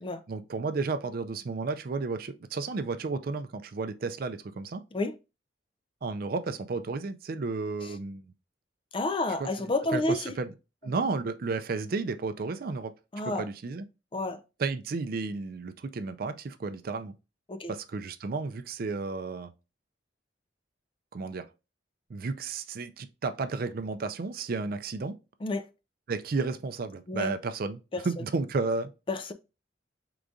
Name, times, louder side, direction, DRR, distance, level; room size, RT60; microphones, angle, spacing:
voice 1, 0.3-4.8 6.0-8.3 9.3-10.5 10.8-12.9 13.2-13.8 14.6-17.1 17.7-19.5 21.1-21.5 22.1-25.2 26.1-28.9, right 4 dB, 50° right, 0.4 m, -32 dB
voice 2, 8.9-10.3 13.1-13.5 14.1-14.4 17.5-17.7 25.4-25.7 27.1-27.3 27.9-28.0 29.1-29.3, left 2 dB, 30° left, 0.4 m, -30 dB
4.9 x 3.8 x 2.3 m
head